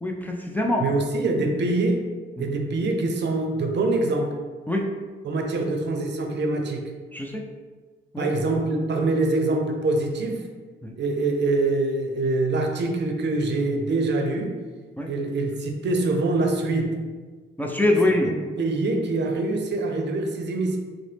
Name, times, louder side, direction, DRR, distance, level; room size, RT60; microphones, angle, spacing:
voice 1, 0.0-0.9 2.4-2.5 4.7-4.9 7.1-7.4 8.1-8.3 10.8-10.9 15.0-15.1 17.6-18.3, left 1 dB, 10° left, 0 dB, 0.4 m, -24 dB
voice 2, 0.8-2.1 2.4-4.4 5.2-6.8 8.2-10.4 11.0-14.6 15.1-17.0 18.3-20.8, right 2 dB, 55° right, 3 dB, 0.6 m, -24 dB
3.8 x 2.0 x 3.2 m, 1.4 s
cardioid pair, 70°, 21 cm